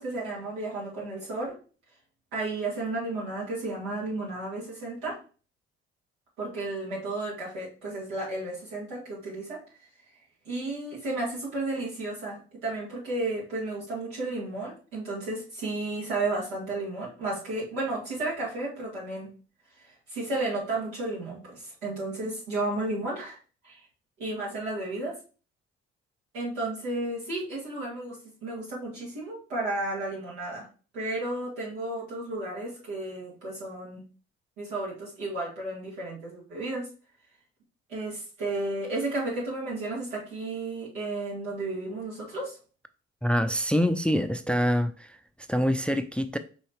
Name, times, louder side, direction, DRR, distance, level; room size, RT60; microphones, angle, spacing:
voice 1, 0.0-1.6 2.3-5.1 6.4-9.6 10.5-19.3 19.8-23.4 23.6-23.8 24.2-25.2 26.3-30.7 30.9-34.0 34.6-36.9 37.9-42.6, right 2 dB, 85° right, 2.2 m, -33 dB
voice 2, 43.2-45.2 45.5-46.4, equal, 5° left, 0.4 m, -25 dB
5.6 x 3.2 x 3.0 m
hypercardioid pair, 45°, 30 cm